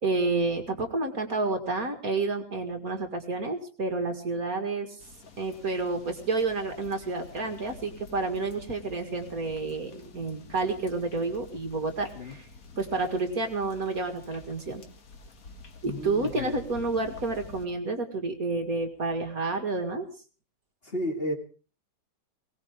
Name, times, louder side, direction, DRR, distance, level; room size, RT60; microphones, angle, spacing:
voice 1, 0.0-5.0 5.4-12.5 12.8-14.8 15.8-20.1, right 3 dB, 50° right, 5 dB, 2.3 m, -30 dB
sound 1, 5.0-17.7, left 3 dB, 50° left, 1.9 m, -49 dB
voice 2, 15.8-16.5 20.8-21.3, left 1 dB, 30° left, 2 dB, 2.8 m, -32 dB
20.5 x 19.0 x 3.6 m, 0.37 s
omnidirectional pair, 1.9 m